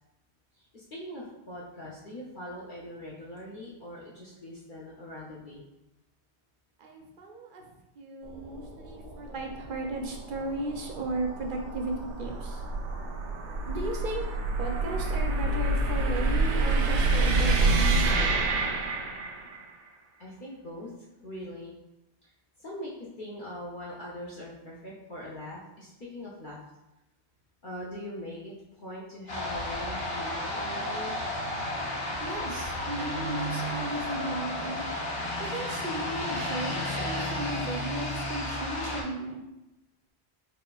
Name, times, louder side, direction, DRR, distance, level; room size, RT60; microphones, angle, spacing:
voice 1, 0.6-5.6 19.0-19.7 20.2-20.9 21.2-21.7 22.2-22.3 22.6-22.9 23.2-26.6 27.6-31.1, equal, 50° left, -6 dB, 0.8 m, -42 dB
voice 2, 6.8-7.7 8.0-12.6 13.7-14.2 14.6-18.1 32.2-34.9 35.4-39.4, right 2 dB, 60° right, 2 dB, 0.6 m, -35 dB
sound 1, 8.3-19.6, right 2 dB, 90° right, 0.9 m, -28 dB
sound 2, 29.3-39.0, left 1 dB, 85° left, 1.2 m, -32 dB
4.2 x 3.2 x 2.3 m, 0.92 s
omnidirectional pair, 1.1 m